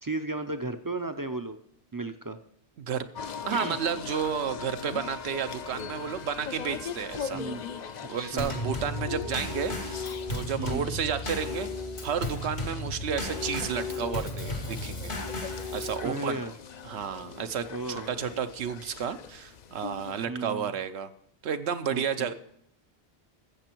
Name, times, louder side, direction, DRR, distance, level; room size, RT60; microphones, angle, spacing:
voice 1, 0.0-1.6 1.9-2.4 3.5-3.8 7.3-7.6 8.2-8.6 10.6-10.9 16.0-16.5 17.7-18.1 20.3-20.7 21.9-22.3, right 2 dB, 30° right, 8 dB, 0.4 m, -34 dB
sound 1, 3.1-20.2, left 7 dB, 50° left, 0.6 m, -41 dB
voice 2, 3.4-7.4 8.1-11.7 12.0-15.1 15.5-16.4 16.8-21.1 21.4-22.3, right 7 dB, 80° right, 9 dB, 0.9 m, -32 dB
Drum kit / Snare drum / Bass drum, 8.4-16.1, left 2 dB, 90° left, 2.5 m, -34 dB
13.5 x 7.6 x 4.5 m, 0.72 s
omnidirectional pair, 1.1 m